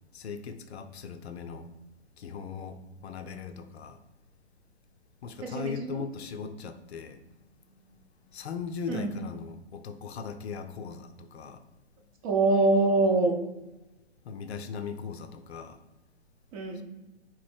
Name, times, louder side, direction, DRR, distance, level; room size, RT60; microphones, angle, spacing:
voice 1, 0.1-1.7 2.2-4.0 5.2-11.6 14.2-15.8 16.7-16.8, left 5 dB, 65° left, 0.6 m, -39 dB
voice 2, 5.4-6.0 8.9-9.1 12.2-13.3 16.5-16.8, right 2 dB, 30° right, 0.7 m, -24 dB
4.0 x 3.1 x 4.3 m
hypercardioid pair, 140°, 35 cm